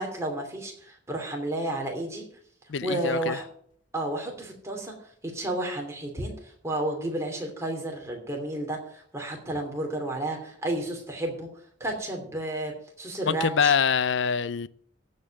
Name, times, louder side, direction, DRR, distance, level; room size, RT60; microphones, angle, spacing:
voice 1, 0.0-2.2 2.8-3.4 3.9-4.9 5.2-11.5 11.8-13.7, right 1 dB, 15° right, 2.8 m, -32 dB
voice 2, 2.7-3.4 13.3-14.7, left 6 dB, 75° left, 0.5 m, -25 dB
15.0 x 5.5 x 7.6 m
head